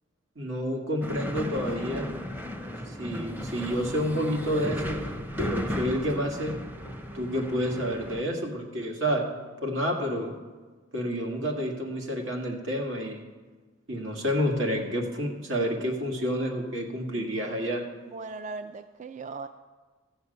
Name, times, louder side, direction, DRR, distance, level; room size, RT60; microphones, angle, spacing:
voice 1, 0.4-2.1 2.9-5.0 5.4-6.6 7.1-9.2 9.6-10.3 10.9-13.2 13.9-17.8, equal, 80° right, 2 dB, 1.9 m, -29 dB
sound 1, 1.0-8.2, left 1 dB, 10° right, 0.7 m, -35 dB
voice 2, 18.1-19.5, right 4 dB, 40° right, 10 dB, 0.3 m, -38 dB
14.5 x 7.2 x 6.7 m, 1.4 s
head